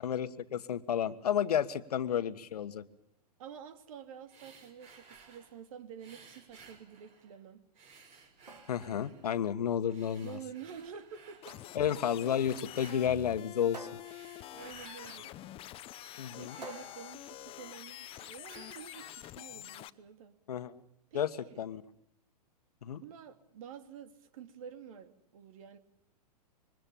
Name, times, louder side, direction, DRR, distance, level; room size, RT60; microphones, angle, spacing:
voice 1, 0.0-2.9 8.7-10.4 11.7-13.9 16.2-16.6 20.5-20.7 21.1-21.3 21.6-21.8 22.8-23.0, left 9 dB, 70° left, 11 dB, 1.6 m, -31 dB
voice 2, 3.4-7.7 10.2-11.6 11.9-12.0 13.6-13.7 14.5-15.4 16.3-20.3 21.1-21.7 22.9-25.8, right 8 dB, 55° right, 10 dB, 2.7 m, -49 dB
sound 1, 4.3-5.6 6.0-7.4 7.7-9.3 9.9-11.5 12.2-13.3 13.9-15.3 15.7-17.5 17.8-19.3, right 5 dB, 35° right, 5.7 m, -57 dB
sound 2, 8.2-18.2, right 2 dB, 90° right, 3.3 m, -54 dB
sound 3, 11.4-19.9, left 14 dB, 25° left, 0.9 m, -47 dB
26.0 x 23.5 x 7.1 m, 0.74 s
hypercardioid pair, 115°, 21 cm